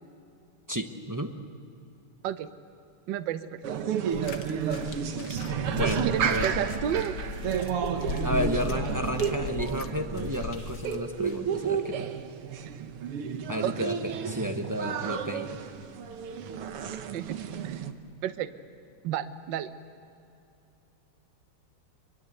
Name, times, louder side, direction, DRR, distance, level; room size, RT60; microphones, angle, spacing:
voice 1, 0.7-1.3 5.7-6.5 8.2-12.2 13.5-15.6, equal, 25° right, 5 dB, 0.4 m, -32 dB
voice 2, 3.1-3.6 4.2-4.3 6.0-7.1 13.6-13.9 17.1-17.4 17.6-17.7 18.2-18.5 19.0-19.7, right 10 dB, 65° right, 11 dB, 1.4 m, -31 dB
sound 1, 3.6-17.9, right 7 dB, 85° right, 2.1 m, -32 dB
sound 2, 4.1-11.4 12.2-12.3, left 4 dB, 60° left, 1.8 m, -37 dB
25.5 x 22.5 x 8.1 m, 2.6 s
omnidirectional pair, 2.4 m